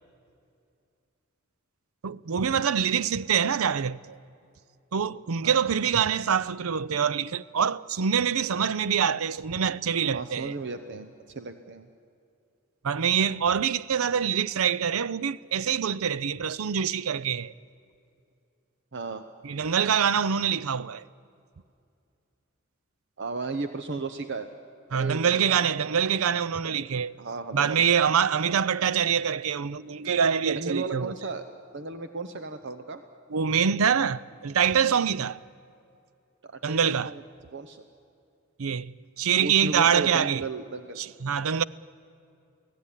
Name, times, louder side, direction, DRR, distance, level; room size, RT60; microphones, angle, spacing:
voice 1, 2.0-4.2 4.9-10.5 12.8-17.5 19.4-21.0 24.9-27.1 27.5-31.1 33.3-35.4 36.6-37.1 38.6-40.4 41.0-41.6, right 7 dB, 85° right, 0.6 m, -25 dB
voice 2, 5.4-5.7 10.1-11.9 18.9-19.2 23.2-24.5 24.9-26.2 26.5-26.6 27.2-27.8 28.4-28.7 30.5-31.4 31.7-33.0 36.4-36.8 37.0-37.2 37.5-37.8 39.4-41.0, right 3 dB, 60° right, 0.9 m, -35 dB
28.5 x 17.5 x 10.0 m
head